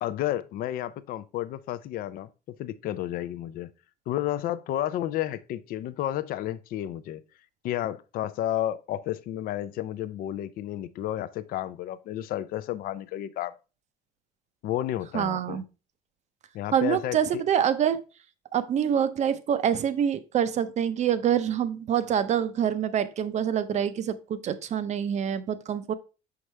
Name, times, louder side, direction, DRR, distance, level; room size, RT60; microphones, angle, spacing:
voice 1, 0.0-3.7 4.1-7.2 7.6-13.5 14.6-15.6 16.5-17.4, left 12 dB, 55° left, 0.4 m, -31 dB
voice 2, 15.1-15.6 16.7-18.0 18.5-25.9, right 9 dB, 40° right, 0.6 m, -26 dB
6.4 x 4.7 x 3.2 m
cardioid pair, 125°, 18 cm